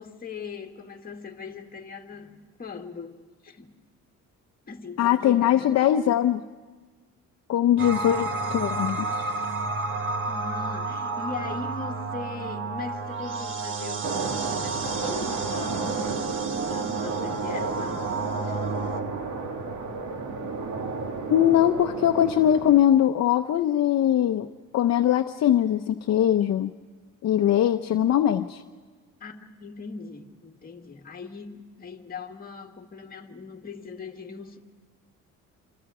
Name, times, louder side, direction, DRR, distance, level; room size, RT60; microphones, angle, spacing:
voice 1, 0.0-3.2 3.4-3.7 4.7-5.7 10.3-16.1 16.6-18.1 18.4-18.6 29.2-34.6, left 5 dB, 30° left, 1.9 m, -40 dB
voice 2, 5.0-6.4 7.5-9.0 21.3-24.5 24.7-26.7 27.2-28.6, left 11 dB, 55° left, 0.8 m, -21 dB
sound 1, 7.8-19.0, right 3 dB, 40° right, 1.4 m, -31 dB
sound 2, 14.0-22.8, right 4 dB, 65° right, 2.5 m, -32 dB
26.5 x 26.5 x 4.9 m
cardioid pair, 125°, 31 cm